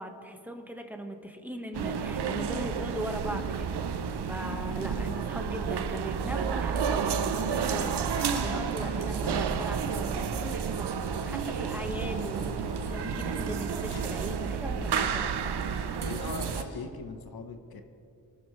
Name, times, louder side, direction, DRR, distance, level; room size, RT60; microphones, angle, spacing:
voice 1, 0.0-11.0 11.2-12.6 12.8-15.3, equal, 5° right, 3 dB, 1.3 m, -39 dB
sound 1, 1.7-16.6, right 6 dB, 85° right, 0.7 m, -31 dB
sound 2, 7.2-16.9, left 2 dB, 85° left, 2.1 m, -45 dB
voice 2, 16.0-17.8, left 5 dB, 65° left, 7 dB, 1.0 m, -39 dB
28.0 x 12.5 x 3.2 m, 2.7 s
wide cardioid pair, 140°, 39 cm